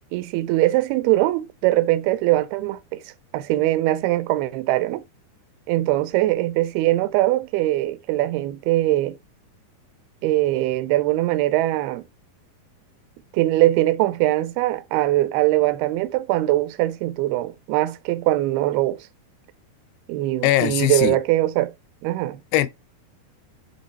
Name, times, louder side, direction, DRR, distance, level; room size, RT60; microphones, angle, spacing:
voice 1, 0.1-3.0 3.3-5.0 5.7-9.2 10.2-12.0 13.3-19.1 20.1-21.7 22.0-22.4, right 16 dB, 85° right, 2.6 m, -21 dB
voice 2, 20.4-21.2 22.5-22.7, left 14 dB, 90° left, 2.7 m, -20 dB
7.9 x 3.1 x 4.0 m
omnidirectional pair, 4.5 m